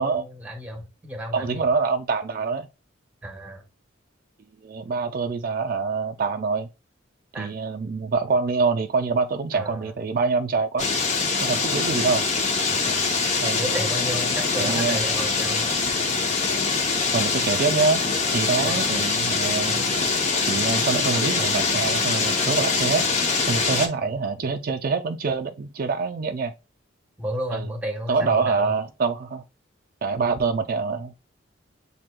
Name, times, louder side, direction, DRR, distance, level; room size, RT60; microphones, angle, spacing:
voice 1, 0.0-1.7 3.2-3.6 7.3-7.5 9.5-9.9 12.7-13.1 13.6-15.7 18.6-19.0 24.0-24.1 27.2-28.7, right 1 dB, 10° right, 1.0 m, -33 dB
voice 2, 1.3-2.7 4.6-6.7 7.4-10.9 11.4-12.3 13.4-13.6 14.6-15.1 17.1-18.0 18.3-19.8 20.5-23.1 23.4-26.5 27.5-27.7 28.1-29.4 30.0-31.2, right 4 dB, 45° right, 0.4 m, -25 dB
sound 1, 10.8-23.9, left 4 dB, 35° left, 0.7 m, -24 dB
7.4 x 2.8 x 2.2 m
head